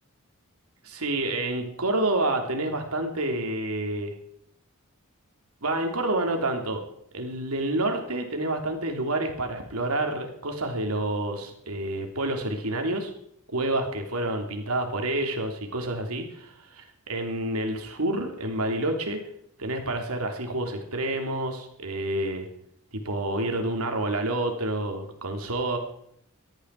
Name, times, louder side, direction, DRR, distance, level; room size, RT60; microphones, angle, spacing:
voice 1, 0.8-4.1 5.6-6.8 7.1-13.1 13.5-19.2 19.6-22.5 22.9-25.8, right 1 dB, 80° right, 4 dB, 3.3 m, -28 dB
18.0 x 13.0 x 4.8 m, 0.72 s
head